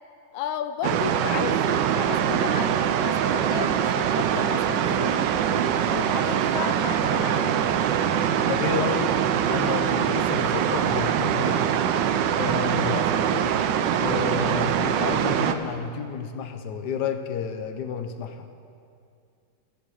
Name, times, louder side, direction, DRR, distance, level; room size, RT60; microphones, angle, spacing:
voice 1, 0.3-7.8, left 9 dB, 85° left, 10 dB, 0.7 m, -34 dB
sound 1, 0.8-15.5, right 9 dB, 75° right, 1.2 m, -23 dB
voice 2, 8.5-9.1 9.5-11.7 12.4-13.6 14.0-18.5, left 6 dB, 65° left, 8 dB, 1.3 m, -31 dB
15.5 x 7.5 x 6.4 m, 2.4 s
omnidirectional pair, 2.2 m